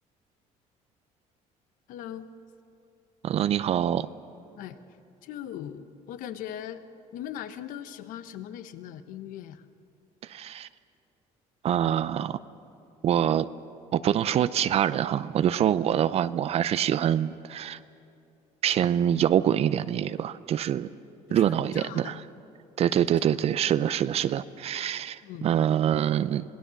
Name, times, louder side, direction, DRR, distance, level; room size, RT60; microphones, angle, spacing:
voice 1, 1.9-2.3 4.6-4.8 5.2-6.8 7.1-9.6 21.3-22.3 23.0-23.3 25.2-25.5, left 10 dB, 75° left, 10 dB, 1.1 m, -40 dB
voice 2, 3.2-4.1 10.2-10.7 11.6-12.4 13.0-13.5 13.9-17.8 18.6-20.9 21.3-22.2 22.8-26.4, right 10 dB, 45° right, 14 dB, 0.5 m, -25 dB
26.5 x 18.5 x 7.1 m, 2.7 s
cardioid pair, 130°, 14 cm